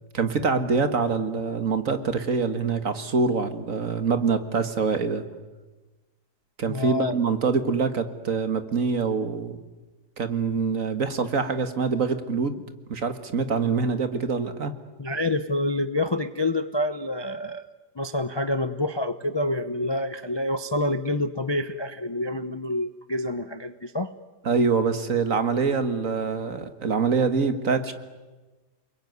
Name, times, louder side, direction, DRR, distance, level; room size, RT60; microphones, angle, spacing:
voice 1, 0.1-5.2 6.6-9.6 10.2-12.6 12.9-14.7 24.5-27.9, right 5 dB, 55° right, 9 dB, 2.0 m, -25 dB
voice 2, 6.7-7.1 15.0-24.1, left 1 dB, 25° left, 11 dB, 0.6 m, -27 dB
29.5 x 21.5 x 9.5 m, 1.2 s
omnidirectional pair, 1.7 m